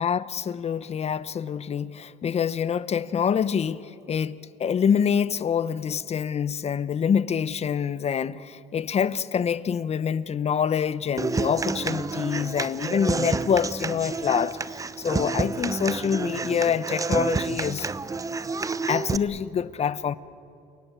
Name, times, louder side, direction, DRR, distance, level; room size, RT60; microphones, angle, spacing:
voice 1, 0.0-17.9 18.8-20.1, left 7 dB, 40° left, 0.8 m, -26 dB
Human voice / Acoustic guitar, 11.2-19.2, right 4 dB, 20° right, 0.7 m, -29 dB
29.5 x 18.0 x 8.3 m
cardioid pair, 110°, 17 cm